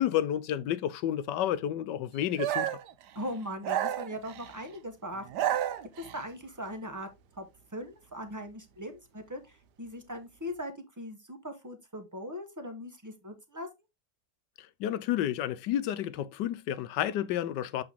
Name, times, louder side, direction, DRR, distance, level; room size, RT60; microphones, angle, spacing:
voice 1, 0.0-2.7 14.6-17.8, left 11 dB, 80° left, 1.3 m, -30 dB
sound 1, 2.4-2.9 3.6-4.6 5.2-6.2, right 11 dB, 75° right, 1.3 m, -31 dB
voice 2, 3.1-5.3 5.6-5.7 6.0-7.1 7.3-7.5 7.7-13.7, equal, 10° right, 1.1 m, -40 dB
7.9 x 3.7 x 3.6 m
omnidirectional pair, 1.9 m